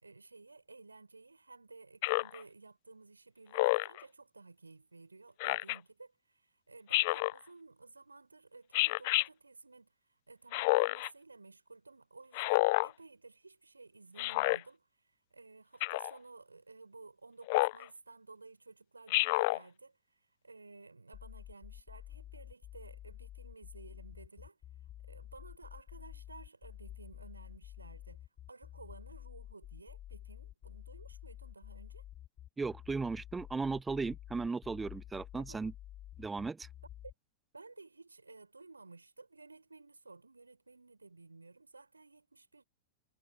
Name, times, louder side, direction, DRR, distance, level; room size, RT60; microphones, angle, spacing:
voice 1, 0.0-9.9 10.3-14.9 15.3-20.0 20.4-24.6 25.0-32.0 35.4-35.6 37.5-42.6, right 3 dB, 80° right, 5.0 m, -55 dB
Speech synthesizer, 2.0-2.4 3.5-4.0 5.4-5.8 6.9-7.4 8.7-9.3 10.5-11.1 12.3-12.9 14.2-14.6 15.8-16.1 17.5-17.8 19.1-19.6, left 23 dB, 45° left, 0.3 m, -29 dB
sound 1, 21.1-37.1, left 12 dB, 30° left, 2.0 m, -50 dB
voice 2, 32.6-35.7 36.2-36.7, right 4 dB, 10° right, 0.6 m, -36 dB
figure-of-eight pair, 95°, 0 cm